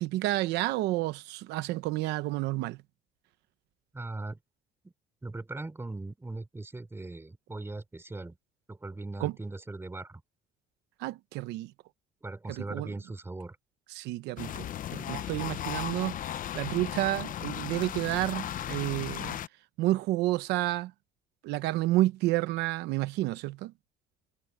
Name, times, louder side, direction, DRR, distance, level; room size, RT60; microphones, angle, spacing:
voice 1, 0.0-2.8 9.2-9.3 11.0-11.7 12.5-12.9 13.9-19.4 19.8-20.9 21.4-23.7, right 17 dB, 90° right, 0.8 m, -30 dB
voice 2, 3.9-4.4 5.2-8.4 8.7-10.2 12.2-13.6, right 2 dB, 15° right, 3.9 m, -39 dB
sound 1, 14.4-19.5, left 11 dB, 55° left, 0.8 m, -36 dB
cardioid pair, 110°, 17 cm